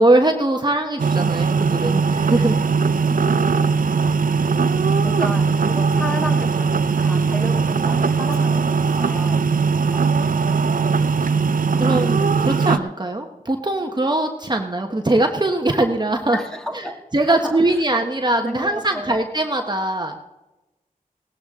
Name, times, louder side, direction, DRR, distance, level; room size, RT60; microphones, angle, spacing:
voice 1, 0.0-2.6 11.7-16.4 16.7-16.8 17.1-20.2, right 2 dB, 30° right, 3 dB, 1.2 m, -21 dB
sound 1, 1.0-12.8, right 5 dB, 65° right, 0.6 m, -19 dB
voice 2, 3.1-4.0 4.9-9.5 9.9-10.1 10.5-11.0 16.3-17.0 17.3-17.8 18.4-19.3, equal, 5° left, 3 dB, 1.8 m, -33 dB
17.0 x 13.0 x 3.7 m, 1.0 s
cardioid pair, 50°, 15 cm